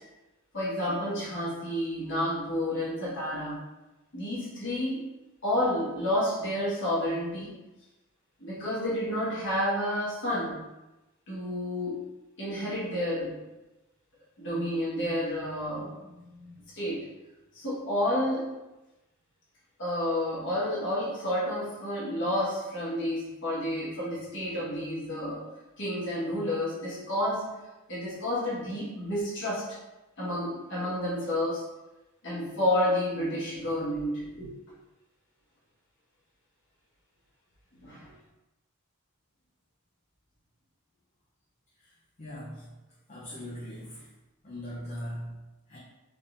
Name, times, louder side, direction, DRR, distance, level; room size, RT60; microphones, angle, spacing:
voice 1, 0.5-3.6 4.1-5.0 5.4-7.5 8.4-10.6 11.3-12.1 12.4-13.3 14.4-16.0 16.4-17.1 17.5-18.5 19.8-25.4 25.8-27.5 27.9-29.7 30.2-31.7 32.2-34.5 37.8-38.1, left 1 dB, 55° left, -7 dB, 1.4 m, -30 dB
voice 2, 42.2-42.7 43.1-44.1 44.4-45.8, equal, 30° left, -6 dB, 0.7 m, -40 dB
3.7 x 3.7 x 2.6 m, 1.0 s
head